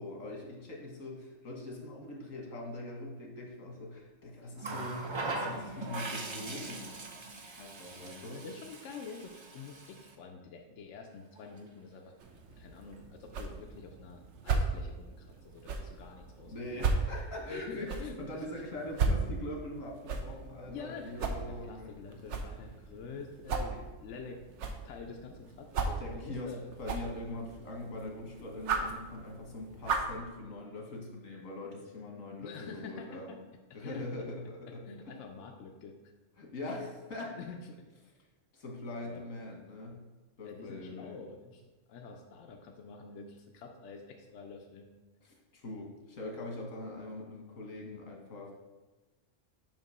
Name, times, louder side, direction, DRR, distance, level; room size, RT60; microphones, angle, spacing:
voice 1, 0.0-7.2 7.6-8.4 16.5-21.9 23.7-23.8 26.0-33.4 33.7-35.1 36.4-37.4 38.5-40.0 40.4-41.2 45.5-48.5, left 2 dB, 85° left, 0 dB, 1.6 m, -42 dB
Water tap faucet, 4.6-10.1 11.4-11.6, right 2 dB, 45° right, 0.3 m, -40 dB
voice 2, 7.9-12.1 12.5-16.8 17.5-18.4 20.7-24.4 24.8-26.7 32.4-33.4 33.8-34.1 34.9-36.0 37.3-37.9 39.0-39.2 40.4-44.9, left 4 dB, 70° left, 2 dB, 0.9 m, -47 dB
sound 1, 12.2-30.2, right 4 dB, 70° right, 0.9 m, -37 dB
7.3 x 2.9 x 5.4 m, 1.2 s
omnidirectional pair, 1.3 m